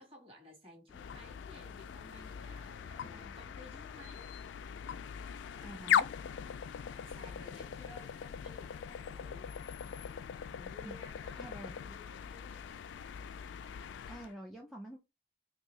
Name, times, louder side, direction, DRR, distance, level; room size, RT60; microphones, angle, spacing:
voice 1, 0.0-4.3 7.0-9.5 10.0-12.7, left 2 dB, 30° right, 1.5 m, -56 dB
sound 1, 0.9-14.3, left 8 dB, 90° left, 0.3 m, -39 dB
voice 2, 5.6-6.1 10.8-10.9 11.4-11.8 14.1-15.0, right 1 dB, ahead, 0.5 m, -47 dB
3.6 x 2.7 x 3.0 m
head